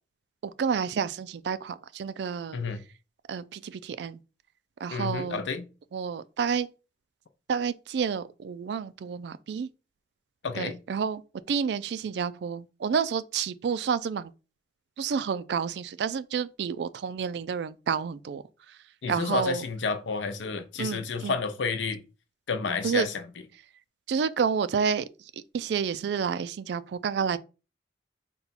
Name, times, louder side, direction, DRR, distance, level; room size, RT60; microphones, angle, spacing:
voice 1, 0.4-2.6 3.3-4.2 4.8-5.4 5.9-6.7 7.5-9.7 10.6-11.2 11.5-14.3 15.0-18.4 19.1-19.6 20.8-21.4 22.8-23.1 24.1-25.1 25.5-27.4, right 6 dB, 65° right, 0.3 m, -29 dB
voice 2, 4.9-5.7 10.4-10.8 19.0-22.0 22.5-23.2, left 5 dB, 85° left, 0.6 m, -30 dB
4.1 x 2.3 x 4.1 m
head